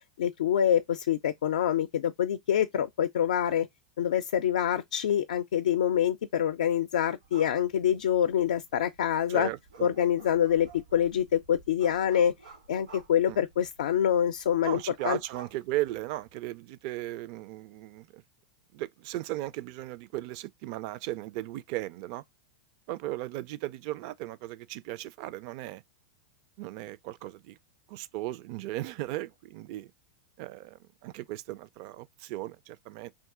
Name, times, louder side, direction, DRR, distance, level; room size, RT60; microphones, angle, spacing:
voice 1, 0.2-3.7 4.0-9.5 9.8-12.3 12.7-15.2, left 9 dB, 75° left, 0.4 m, -26 dB
sound 1, 7.2-16.4, right 4 dB, 90° right, 2.2 m, -53 dB
voice 2, 9.3-9.9 13.3-13.4 14.6-18.2 18.7-22.2 22.9-25.8 26.6-27.6 27.9-29.9 30.4-33.1, right 16 dB, 55° right, 0.4 m, -36 dB
3.6 x 2.6 x 3.5 m
hypercardioid pair, 110°, 4 cm